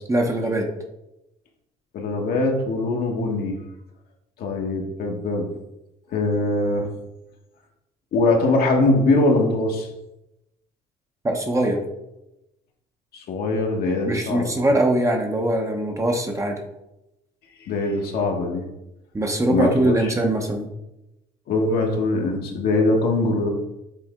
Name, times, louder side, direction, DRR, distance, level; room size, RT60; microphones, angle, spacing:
voice 1, 0.1-0.7 11.2-11.8 14.0-16.6 19.1-20.7, right 1 dB, 20° right, 2 dB, 1.0 m, -22 dB
voice 2, 1.9-3.6 4.4-5.5 6.1-6.9 8.1-9.9 13.1-14.5 17.6-18.7 19.5-20.1 21.5-23.5, left 2 dB, 65° left, 1 dB, 1.4 m, -22 dB
7.4 x 3.5 x 3.7 m, 0.90 s
cardioid pair, 110°, 17 cm